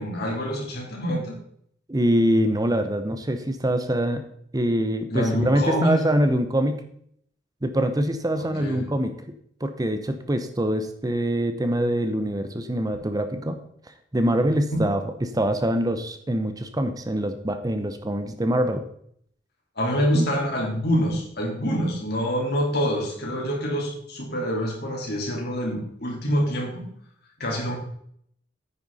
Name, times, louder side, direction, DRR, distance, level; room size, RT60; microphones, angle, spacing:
voice 1, 0.0-1.3 5.1-6.0 8.4-8.8 14.7-14.8 19.8-26.8 27.4-27.8, equal, 60° left, -1 dB, 3.7 m, -26 dB
voice 2, 1.9-4.2 4.5-6.8 7.6-9.1 9.6-13.6 14.1-18.8 20.1-20.2, right 1 dB, 20° right, 8 dB, 0.8 m, -24 dB
9.8 x 9.4 x 4.1 m, 0.66 s
head